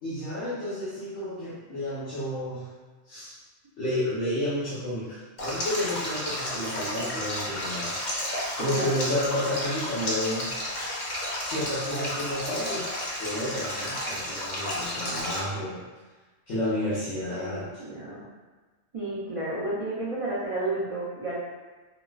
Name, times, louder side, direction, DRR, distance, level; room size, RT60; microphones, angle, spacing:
voice 1, 0.0-2.7 3.1-3.4 3.8-8.1 8.6-10.5 11.5-12.9 13.2-15.8 16.5-17.8, left 1 dB, 80° left, -12 dB, 1.3 m, -31 dB
Stream, 5.4-15.4, left 1 dB, 45° left, 0.7 m, -32 dB
voice 2, 8.6-9.0 17.3-18.3 18.9-21.4, right 2 dB, 45° right, -9 dB, 0.4 m, -32 dB
4.1 x 2.0 x 2.3 m, 1.3 s
omnidirectional pair, 1.3 m